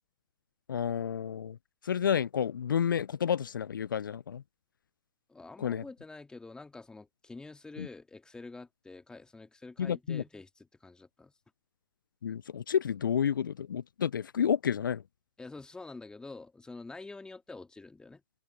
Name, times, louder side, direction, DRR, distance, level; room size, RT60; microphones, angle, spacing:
voice 1, 0.7-1.6 1.8-4.4 5.6-5.8 7.8-7.9 9.8-10.2 12.2-15.0, left 8 dB, 70° left, 0.5 m, -30 dB
voice 2, 5.3-11.3 15.4-18.2, left 3 dB, 5° left, 2.1 m, -47 dB
figure-of-eight pair, 110°, 11 cm